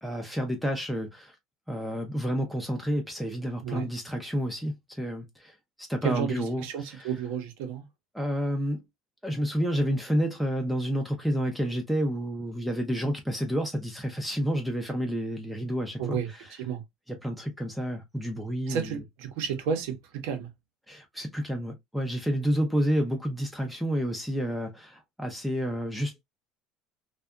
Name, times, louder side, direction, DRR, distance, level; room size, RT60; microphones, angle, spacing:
voice 1, 0.0-1.4 1.7-7.1 8.1-8.8 9.2-16.5 17.1-19.0 20.9-26.3, equal, ahead, 0.4 m, -30 dB
voice 2, 6.0-7.8 16.0-16.3 16.6-16.8 18.7-20.5, right 7 dB, 90° right, 0.8 m, -31 dB
2.6 x 2.3 x 2.2 m
cardioid pair, 150°, 0 cm